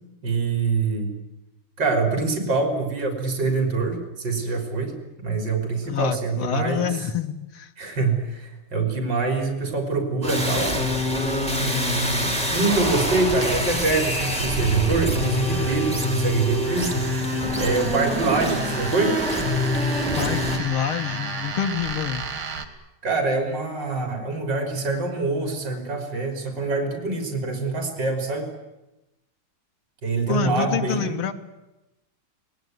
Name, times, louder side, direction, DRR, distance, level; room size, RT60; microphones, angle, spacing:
voice 1, 0.2-1.1 1.8-7.0 7.8-10.8 11.6-17.1 17.6-19.2 23.0-28.5 30.0-31.2, right 3 dB, 60° right, 4 dB, 4.4 m, -25 dB
voice 2, 5.8-7.7 20.2-22.3 30.3-31.3, left 8 dB, 90° left, 5 dB, 2.2 m, -27 dB
sound 1, 10.2-20.6, equal, 5° left, 3.8 m, -25 dB
sound 2, 13.3-22.7, right 4 dB, 75° right, 2.8 m, -35 dB
26.5 x 19.0 x 9.4 m, 0.99 s
omnidirectional pair, 2.3 m